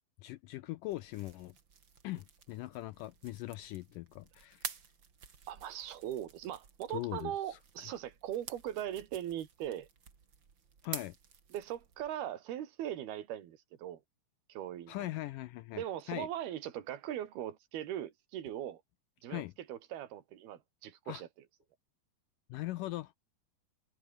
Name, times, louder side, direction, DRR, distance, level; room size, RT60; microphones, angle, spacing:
voice 1, 0.2-1.6 2.0-4.7 6.9-7.9 10.8-11.2 14.9-16.3 19.3-19.5 21.1-21.2 22.5-23.1, left 17 dB, 85° left, 1.9 m, -41 dB
sound 1, 0.9-12.1, right 6 dB, 35° right, 2.4 m, -50 dB
voice 2, 5.5-9.9 11.5-14.0 14.5-15.1 15.8-18.8 19.2-19.4 19.7-21.3, right 11 dB, 75° right, 4.0 m, -40 dB
omnidirectional pair, 4.5 m